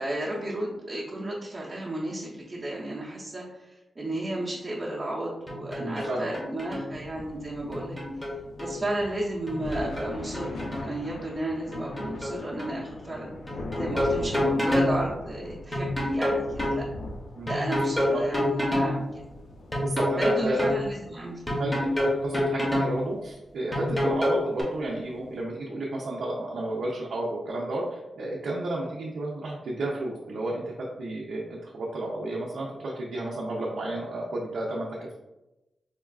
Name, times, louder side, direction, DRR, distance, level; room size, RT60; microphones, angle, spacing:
voice 1, 0.0-8.0 8.6-13.3 13.8-16.9 17.5-19.2 20.2-21.7, right 1 dB, 25° right, -7 dB, 0.5 m, -33 dB
sound 1, 5.5-6.1 6.3-6.9 7.7-8.7 9.5-10.9 11.7-12.3 12.6-12.7 13.5-14.9 15.7-16.8 17.5-18.9 19.7-20.8 21.5-22.9 23.7-24.6, left 1 dB, 10° left, 0.6 m, -27 dB
voice 2, 5.8-6.3 14.2-14.3 17.4-17.5 18.1-18.3 19.8-20.7 21.6-30.7 31.0-35.2, right 1 dB, 85° right, -4 dB, 0.5 m, -32 dB
sound 2, 6.9-25.4, left 2 dB, 85° left, 0.4 m, -42 dB
4.2 x 2.3 x 2.3 m, 0.98 s
wide cardioid pair, 175°, 0 cm